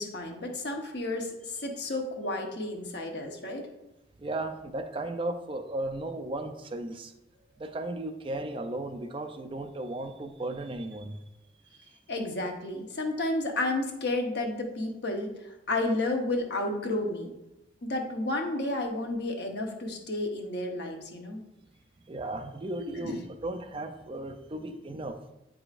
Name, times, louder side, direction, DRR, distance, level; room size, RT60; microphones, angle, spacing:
voice 1, 0.0-3.6 12.1-17.3 17.8-21.4 23.0-23.2, left 2 dB, 65° left, 3 dB, 0.9 m, -31 dB
voice 2, 4.2-7.1 7.6-11.2 22.1-25.2, right 2 dB, 30° right, 7 dB, 0.4 m, -35 dB
8.4 x 4.9 x 2.5 m, 0.91 s
head